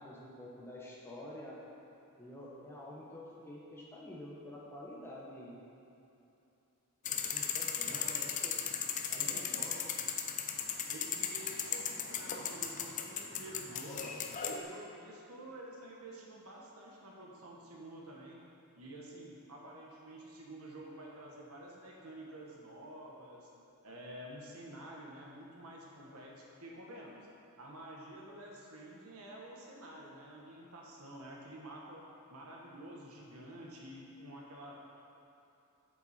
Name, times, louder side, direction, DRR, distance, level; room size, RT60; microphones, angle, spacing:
voice 1, 0.0-1.6 2.2-5.5 7.1-8.6 9.1-9.9, left 1 dB, 10° left, -5 dB, 1.3 m, -49 dB
sound 1, 7.1-14.6, left 7 dB, 35° left, 0.5 m, -37 dB
voice 2, 7.9-8.4 9.1-9.9 10.9-14.2 14.4-18.4 18.8-23.5 23.8-27.2 27.6-35.0, right 1 dB, 80° right, -2 dB, 1.5 m, -49 dB
7.8 x 7.7 x 4.4 m, 2.8 s
head